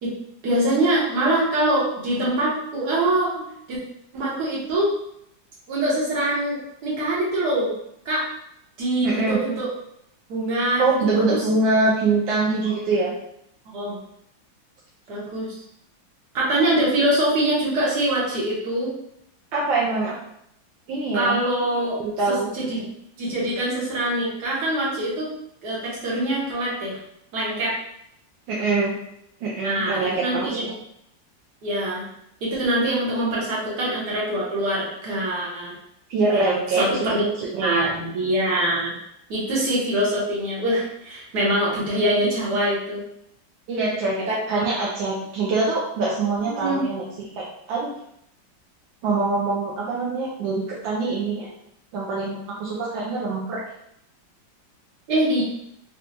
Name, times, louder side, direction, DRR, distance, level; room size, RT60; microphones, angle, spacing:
voice 1, 0.4-3.8 4.1-4.9 5.7-7.7 8.0-8.3 8.8-9.7 10.3-10.8 11.1-11.4 12.6-12.8 13.6-14.0 15.1-15.5 16.3-18.9 21.1-22.0 22.3-22.9 23.2-25.3 25.6-27.0 27.3-27.8 29.6-30.7 31.6-32.1 32.4-35.7 36.3-37.2 37.6-39.0 39.3-43.0 44.3-44.4 46.6-46.8 55.1-55.4, right 1 dB, 60° right, -6 dB, 1.6 m, -24 dB
voice 2, 9.0-9.4 10.8-13.1 19.5-20.1 20.9-21.4 22.0-22.5 28.5-28.9 29.4-30.7 36.1-37.1 37.4-37.9 43.7-44.2 44.5-47.9 49.0-51.5 51.9-53.6, right 3 dB, 80° right, -5 dB, 1.3 m, -24 dB
4.3 x 2.3 x 2.6 m, 0.75 s
omnidirectional pair, 2.1 m